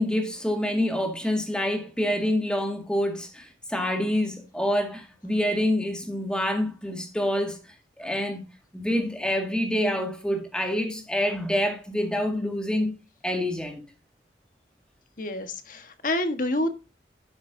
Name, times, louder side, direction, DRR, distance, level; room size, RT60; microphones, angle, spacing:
voice 1, 0.0-7.6 8.0-8.5 8.7-12.9 13.2-13.8, left 1 dB, 5° left, 2.1 m, -27 dB
voice 2, 15.2-16.7, left 1 dB, 50° left, 1.5 m, -28 dB
12.5 x 8.1 x 2.7 m
head